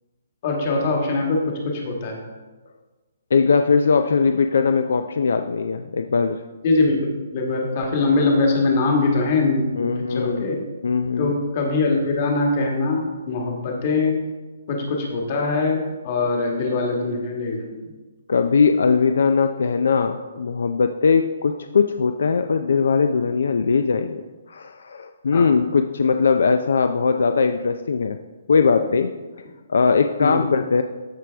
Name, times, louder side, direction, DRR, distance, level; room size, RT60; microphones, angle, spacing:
voice 1, 0.4-2.2 6.6-10.6 11.2-14.2 14.7-17.9 25.3-25.5 30.2-30.5, left 3 dB, 35° left, 1 dB, 1.5 m, -22 dB
voice 2, 3.3-6.4 9.8-10.5 10.8-11.4 18.3-24.2 24.5-28.2 28.5-29.1 29.7-30.8, left 5 dB, 70° left, 7 dB, 0.4 m, -20 dB
13.5 x 4.8 x 3.4 m, 1.3 s
hypercardioid pair, 170°, 0 cm